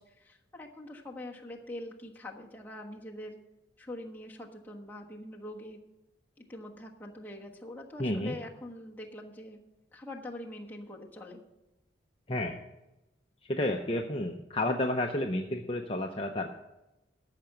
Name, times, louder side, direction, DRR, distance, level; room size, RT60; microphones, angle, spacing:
voice 1, 0.0-3.4 3.8-5.8 6.4-9.6 9.9-11.4, left 1 dB, 10° left, -2 dB, 1.3 m, -44 dB
voice 2, 8.0-8.4 12.3-12.6 13.5-16.5, left 1 dB, 30° left, 3 dB, 0.6 m, -31 dB
13.5 x 5.8 x 7.7 m, 0.97 s
head